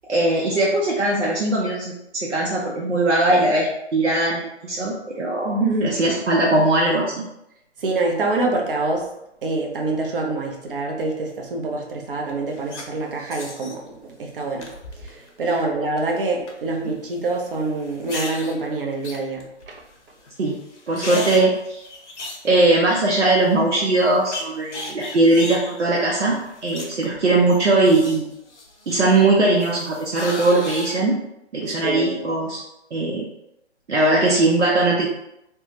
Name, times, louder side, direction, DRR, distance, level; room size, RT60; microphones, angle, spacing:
voice 1, 0.1-7.2 20.4-20.6 20.9-21.8 22.4-28.3 28.9-31.2 31.5-32.6 32.9-33.2 33.9-35.1, right 2 dB, 85° right, -3 dB, 0.7 m, -20 dB
voice 2, 5.4-5.9 7.8-9.1 9.4-14.7 15.0-19.8 31.8-32.3, right 2 dB, 50° right, 0 dB, 0.7 m, -25 dB
sound 1, 12.3-12.8 13.3-13.7 14.6-15.3 15.6-16.0 16.5-16.6 17.8-18.5 19.0-19.9 20.2-20.3 20.6-23.1 23.5-23.6 24.0-27.2 27.5-29.2 29.6-31.0, left 2 dB, 85° left, 0.8 m, -35 dB
3.3 x 2.2 x 2.9 m, 0.84 s
figure-of-eight pair, 140°, 35 cm